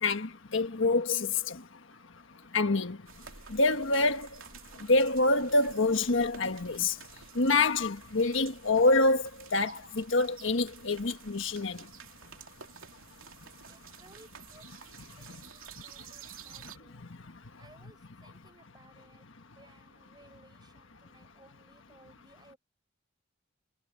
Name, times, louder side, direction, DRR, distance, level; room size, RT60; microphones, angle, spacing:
voice 1, 0.0-1.6 2.5-3.0 3.5-4.3 4.9-6.9 7.3-9.2 9.5-11.8, left 3 dB, 65° left, 1.5 m, -26 dB
sound 1, 3.1-16.8, right 7 dB, 90° right, 2.7 m, -51 dB
voice 2, 13.7-17.1 17.6-19.3 19.6-22.6, right 2 dB, 20° right, 6.9 m, -60 dB
head